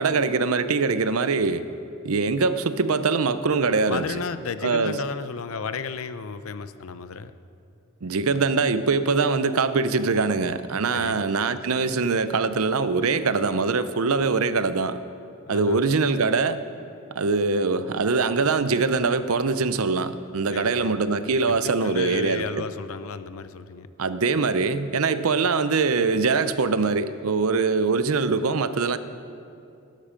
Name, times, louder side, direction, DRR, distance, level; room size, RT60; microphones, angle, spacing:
voice 1, 0.0-1.7 2.0-4.0 4.6-5.0 8.0-15.0 15.5-16.6 17.2-22.7 24.0-29.0, right 4 dB, 80° right, 12 dB, 0.7 m, -23 dB
voice 2, 3.9-7.3 10.9-11.2 15.5-15.8 20.5-20.9 21.5-23.9, left 5 dB, 75° left, 12 dB, 0.6 m, -33 dB
18.0 x 12.0 x 5.1 m, 2.5 s
head